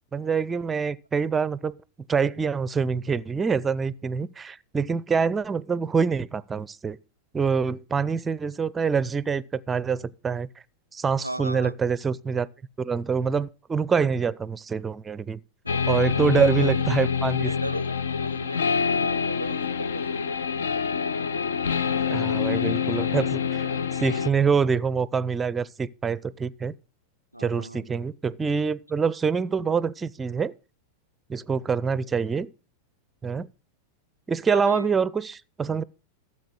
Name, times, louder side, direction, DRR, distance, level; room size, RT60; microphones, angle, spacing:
voice 1, 0.1-1.8 2.1-7.0 7.3-10.5 10.9-12.5 12.8-15.4 15.9-17.5 22.1-26.7 27.4-30.5 31.3-32.5 33.2-33.5 34.3-35.8, right 5 dB, 15° right, 0.5 m, -25 dB
voice 2, 11.2-11.7 15.6-16.9 17.4-20.4 27.3-27.9 34.5-34.9, right 1 dB, 85° right, 0.5 m, -36 dB
sound 1, 15.7-24.3, left 6 dB, 65° left, 0.6 m, -26 dB
13.0 x 7.5 x 6.2 m
figure-of-eight pair, 90°, 0 cm